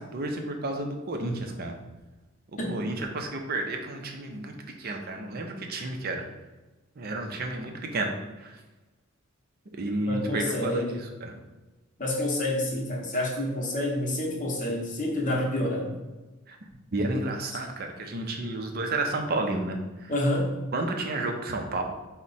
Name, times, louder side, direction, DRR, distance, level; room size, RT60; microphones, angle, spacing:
voice 1, 0.0-1.7 2.5-6.3 7.0-8.6 9.7-11.4 16.5-16.6 16.9-20.1 20.7-21.8, right 2 dB, 45° right, 4 dB, 0.5 m, -31 dB
voice 2, 10.1-11.0 12.0-16.0 20.1-20.5, left 1 dB, 35° left, -2 dB, 0.8 m, -28 dB
4.6 x 2.1 x 4.0 m, 1.1 s
head